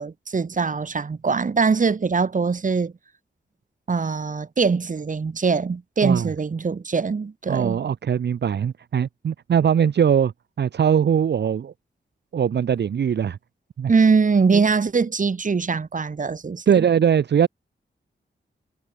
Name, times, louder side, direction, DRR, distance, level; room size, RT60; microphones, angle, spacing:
voice 1, 0.0-2.9 3.9-7.8 13.9-16.8, right 5 dB, 45° right, 1.4 m, -22 dB
voice 2, 7.5-10.3 10.6-11.7 12.3-13.4 13.8-13.9 16.7-17.5, right 8 dB, 65° right, 0.6 m, -21 dB
wide cardioid pair, 105°, 19 cm